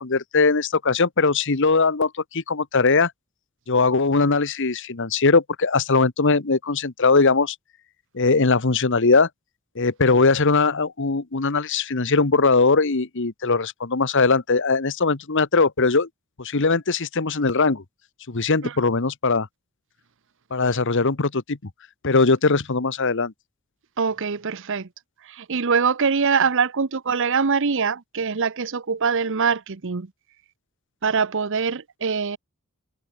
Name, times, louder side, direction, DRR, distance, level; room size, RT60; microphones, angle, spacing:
voice 1, 0.0-3.1 3.7-7.5 8.1-9.3 9.8-16.1 16.4-17.8 18.3-19.5 20.5-21.6 22.0-23.3, left 4 dB, 60° left, 1.2 m, -20 dB
voice 2, 24.0-24.9 25.3-30.1 31.0-32.4, right 5 dB, 60° right, 0.9 m, -23 dB
head